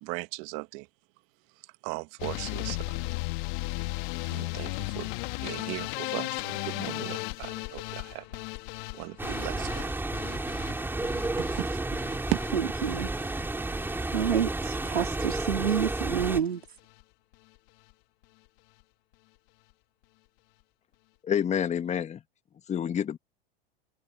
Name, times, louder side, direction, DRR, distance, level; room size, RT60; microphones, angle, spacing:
voice 1, 0.0-0.9 1.8-3.0 4.3-5.1 5.4-8.4 8.9-9.9 11.4-11.8 12.3-12.4, right 27 dB, 45° right, 1.7 m, -37 dB
sound 1, 2.2-14.3 14.6-15.2 15.5-16.1 16.4-16.7 17.0-17.1 17.3-17.4, left 29 dB, 50° left, 2.9 m, -36 dB
sound 2, 9.2-16.4, right 2 dB, 5° right, 4.6 m, -32 dB
voice 2, 12.5-13.1 13.6-13.8 14.1-16.6, right 8 dB, 85° right, 3.7 m, -28 dB
voice 3, 21.3-22.2 22.7-23.2, left 9 dB, 20° left, 1.7 m, -28 dB
hypercardioid pair, 105°, 31 cm